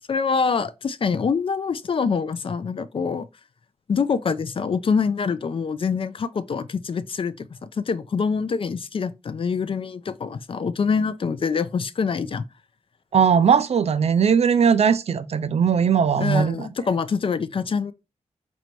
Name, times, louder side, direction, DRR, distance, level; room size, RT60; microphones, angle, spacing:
voice 1, 0.1-3.3 3.9-12.4 16.2-17.9, left 5 dB, 45° left, 0.4 m, -25 dB
voice 2, 13.1-16.7, right 7 dB, 55° right, 0.4 m, -19 dB
4.3 x 2.6 x 4.5 m
wide cardioid pair, 160°, 13 cm